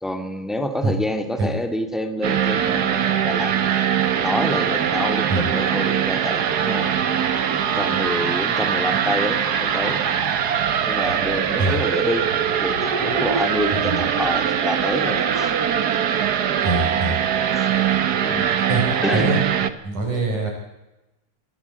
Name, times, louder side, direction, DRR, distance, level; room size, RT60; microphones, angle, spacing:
voice 1, 0.0-3.5 4.1-7.0 7.8-10.0 10.8-15.6 17.5-17.7 18.2-18.4 19.0-19.3, left 1 dB, ahead, 7 dB, 1.9 m, -27 dB
sound 1, 2.2-19.7, right 8 dB, 60° right, 1.0 m, -22 dB
voice 2, 16.6-17.2 18.7-18.8 19.1-19.4 19.8-20.5, right 2 dB, 90° right, 0 dB, 7.0 m, -23 dB
26.5 x 17.0 x 8.4 m, 0.99 s
omnidirectional pair, 3.4 m